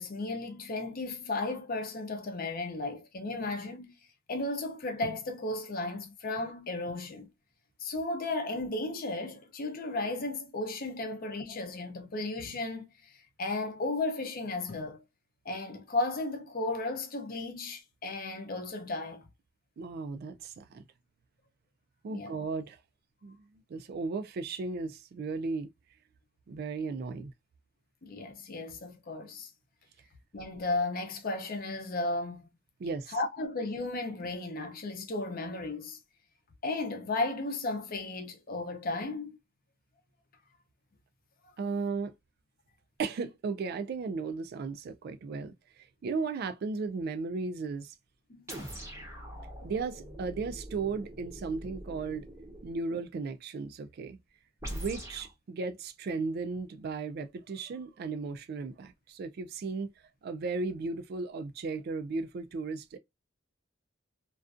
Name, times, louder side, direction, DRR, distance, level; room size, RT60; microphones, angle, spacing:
voice 1, 0.0-3.9 4.3-7.3 7.8-13.1 13.4-15.0 15.4-19.3 22.1-22.4 28.0-29.5 30.3-32.5 33.1-36.0 36.6-39.4 48.3-48.5, left 2 dB, 45° left, 0.6 m, -34 dB
voice 2, 19.8-20.9 22.0-22.8 23.2-23.4 23.7-25.7 26.5-27.3 32.8-33.2 41.6-42.1 43.0-45.5 46.0-47.9 49.6-52.3 52.6-54.2 54.7-59.9 60.2-63.0, right 4 dB, 50° right, 0.3 m, -35 dB
sound 1, 48.5-52.8 54.6-55.3, right 1 dB, 15° right, 0.7 m, -43 dB
2.4 x 2.3 x 2.4 m
head